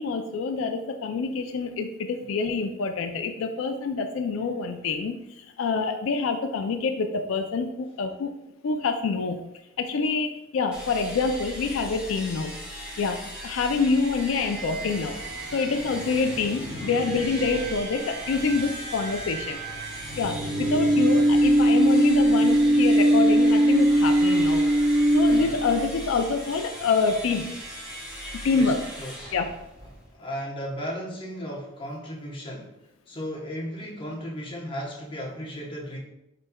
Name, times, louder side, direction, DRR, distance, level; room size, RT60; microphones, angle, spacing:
voice 1, 0.0-8.3 8.6-9.5 9.8-12.6 13.0-15.2 15.5-19.6 20.2-24.7 25.1-27.6 28.4-28.8 29.3-29.5, left 4 dB, 85° left, 5 dB, 0.4 m, -26 dB
sound 1, 10.7-30.2, equal, 5° right, 1.3 m, -39 dB
sound 2, 14.8-25.9, right 1 dB, 75° right, 1.2 m, -23 dB
voice 2, 29.0-29.3 30.1-32.7 33.1-36.0, equal, 25° left, -4 dB, 0.9 m, -35 dB
5.2 x 4.2 x 2.2 m, 0.90 s
head